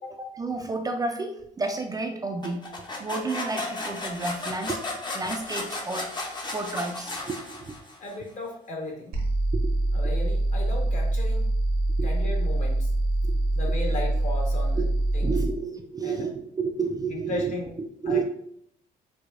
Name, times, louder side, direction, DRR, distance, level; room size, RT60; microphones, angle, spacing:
voice 1, 0.2-2.6 3.0-4.8 5.1-6.1 6.5-7.7 9.5-9.7 12.0-12.1 13.2-13.4 14.8-14.9 15.2-18.2, right 4 dB, 25° right, 4 dB, 0.4 m, -31 dB
sound 1, 2.4-8.1, left 2 dB, 30° left, 0.7 m, -34 dB
voice 2, 8.0-9.1 9.9-11.4 12.0-12.9 13.5-14.8 15.1-15.3 16.0-16.3 17.1-17.7 18.0-18.2, left 2 dB, 50° left, -1 dB, 1.2 m, -35 dB
sound 2, 9.1-15.5, right 1 dB, 75° right, 0.8 m, -25 dB
4.7 x 2.2 x 2.4 m, 0.69 s
cardioid pair, 105°, 16 cm